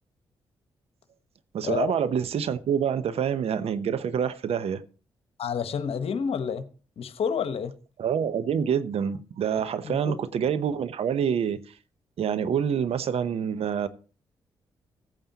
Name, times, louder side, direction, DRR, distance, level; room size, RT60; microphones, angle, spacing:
voice 1, 1.5-4.8 8.0-11.6 12.2-13.9, right 8 dB, 65° right, 0.8 m, -26 dB
voice 2, 5.4-6.6 7.0-7.7 9.8-10.1, left 7 dB, 60° left, 1.0 m, -29 dB
15.5 x 8.8 x 2.9 m
hypercardioid pair, 40°, 11 cm